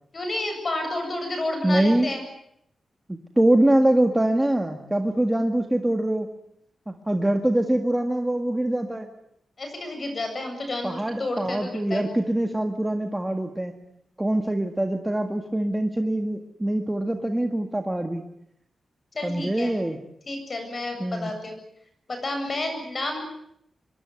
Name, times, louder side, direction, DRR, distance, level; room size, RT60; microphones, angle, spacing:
voice 1, 0.1-2.2 9.6-12.1 19.1-19.7 20.3-21.6 22.1-23.2, left 2 dB, 35° left, 5 dB, 8.0 m, -30 dB
voice 2, 1.6-2.1 3.1-6.3 6.9-9.1 10.8-13.7 14.2-18.2 19.2-20.0 21.0-21.3, right 1 dB, 10° right, 4 dB, 1.7 m, -24 dB
25.0 x 22.5 x 9.5 m, 0.74 s
wide cardioid pair, 155°, 0 cm